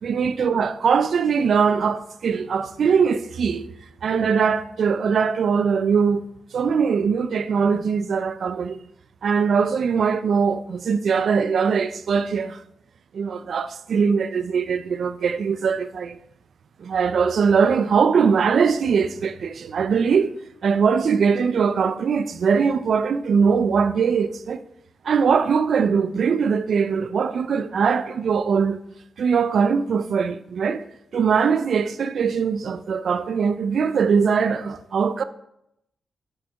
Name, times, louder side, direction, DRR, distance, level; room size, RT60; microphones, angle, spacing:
voice 1, 0.0-3.7 4.0-6.3 6.5-8.8 9.2-12.6 13.1-16.2 16.8-20.3 20.6-24.6 25.0-28.8 29.2-30.8 31.1-35.2, right 6 dB, 70° right, 0.4 m, -21 dB
9.7 x 5.0 x 3.4 m
supercardioid pair, 50°, 0 cm